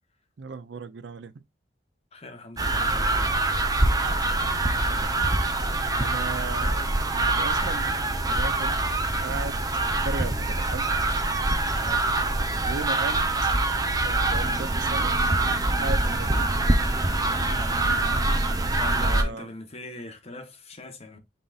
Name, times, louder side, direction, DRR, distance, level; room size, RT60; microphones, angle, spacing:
voice 1, 0.4-1.3 3.9-5.1 6.0-7.9 8.2-8.8 9.2-9.6 10.0-10.8 12.6-13.5 14.0-15.1 15.8-16.6 19.0-19.5, right 4 dB, 70° right, 0.5 m, -37 dB
voice 2, 2.1-3.3 11.7-12.0 17.5-17.8 18.2-21.2, left 2 dB, 35° left, 1.1 m, -42 dB
sound 1, 2.6-19.2, right 2 dB, 20° right, 0.7 m, -24 dB
5.5 x 3.9 x 2.4 m
head